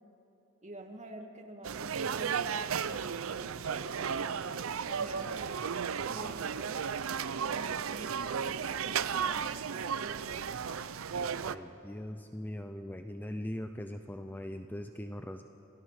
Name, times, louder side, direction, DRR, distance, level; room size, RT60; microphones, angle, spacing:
voice 1, 0.6-3.9 4.8-5.4 5.9-6.8 7.4-10.6, right 1 dB, 35° right, 3 dB, 1.9 m, -48 dB
sound 1, 1.6-11.6, right 7 dB, 70° right, 0.5 m, -34 dB
voice 2, 11.4-15.4, left 1 dB, 10° left, 7 dB, 0.5 m, -40 dB
27.0 x 16.0 x 6.5 m, 2.9 s
head